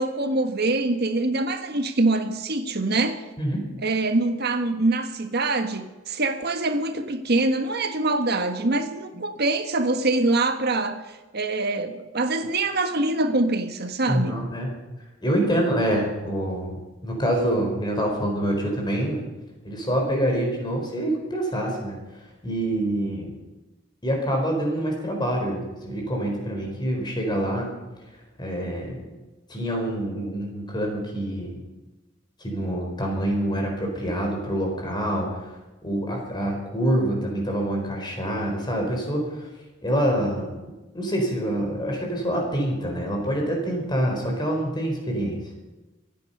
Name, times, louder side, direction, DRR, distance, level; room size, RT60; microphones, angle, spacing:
voice 1, 0.0-3.2 3.8-14.4, right 2 dB, 55° right, 7 dB, 1.5 m, -24 dB
voice 2, 14.1-14.8 15.2-16.8 17.0-19.3 19.6-22.0 22.4-23.4 24.0-27.7 28.4-29.1 29.5-31.6 32.4-35.5 35.8-39.5 39.8-45.4, right 1 dB, 25° left, 1 dB, 4.6 m, -26 dB
25.5 x 10.0 x 5.5 m, 1.1 s
head